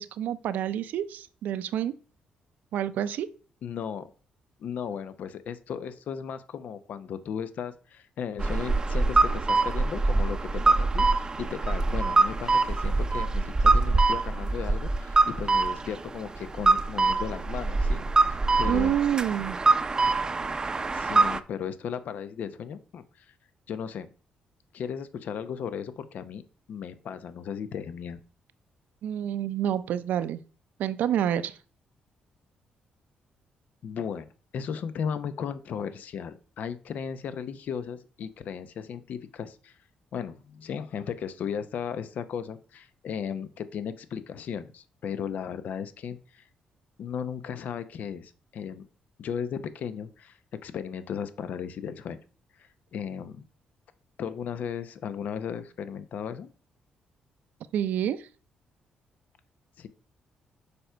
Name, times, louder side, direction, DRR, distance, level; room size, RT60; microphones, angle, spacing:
voice 1, 0.0-2.0 2.7-3.3 18.6-19.6 29.0-30.4 30.8-31.6 57.7-58.3, right 10 dB, 80° right, 14 dB, 0.6 m, -28 dB
voice 2, 3.6-4.1 4.6-11.1 11.4-19.0 20.9-23.3 23.7-24.1 24.7-26.4 26.7-28.2 33.8-39.7 40.1-46.4 47.0-48.8 49.2-52.2 52.6-53.4 54.2-56.5 59.8-59.9, left 7 dB, 70° left, 12 dB, 0.8 m, -36 dB
sound 1, 8.4-21.4, right 3 dB, 25° right, 0.6 m, -24 dB
7.0 x 5.2 x 4.5 m, 0.39 s
cardioid pair, 90°, 3 cm